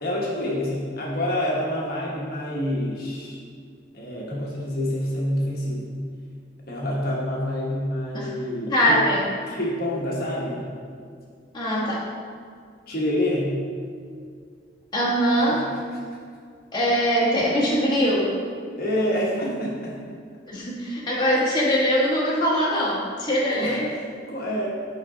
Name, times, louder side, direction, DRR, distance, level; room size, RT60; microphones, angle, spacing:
voice 1, 0.0-3.4 3.9-6.0 6.7-9.0 9.4-10.7 12.9-13.6 15.5-15.6 18.8-20.0 21.2-21.3 23.5-24.7, left 1 dB, 50° left, -4 dB, 1.2 m, -27 dB
voice 2, 8.7-9.3 11.5-12.1 14.9-15.7 16.7-18.3 20.5-23.9, equal, 25° left, -6 dB, 1.3 m, -22 dB
9.6 x 4.7 x 3.8 m, 2.2 s
head